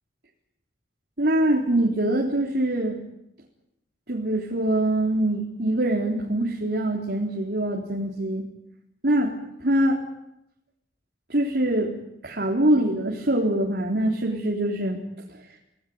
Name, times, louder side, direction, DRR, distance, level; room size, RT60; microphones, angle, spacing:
voice 1, 1.2-3.0 4.1-8.4 9.0-10.0 11.3-11.9 12.2-15.0, right 1 dB, 60° right, -2 dB, 3.9 m, -24 dB
28.5 x 19.0 x 9.5 m, 0.84 s
head